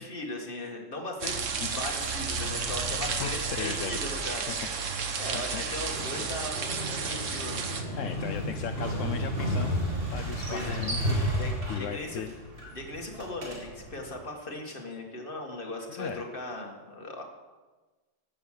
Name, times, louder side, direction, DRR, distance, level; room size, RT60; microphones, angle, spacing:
voice 1, 0.0-4.5 5.2-8.1 10.5-10.8 11.4-12.2 12.7-17.2, left 1 dB, 45° left, 2 dB, 2.1 m, -38 dB
sound 1, 1.2-7.8, right 5 dB, 75° right, 1.5 m, -32 dB
voice 2, 3.0-4.0 4.5-4.7 5.3-5.7 8.0-9.8 10.1-11.3 11.7-12.3 15.9-16.2, left 8 dB, 80° left, 6 dB, 1.1 m, -37 dB
Motorcycle, 5.7-14.0, equal, 45° right, 2.9 m, -33 dB
13.5 x 8.8 x 6.5 m, 1.3 s
omnidirectional pair, 1.3 m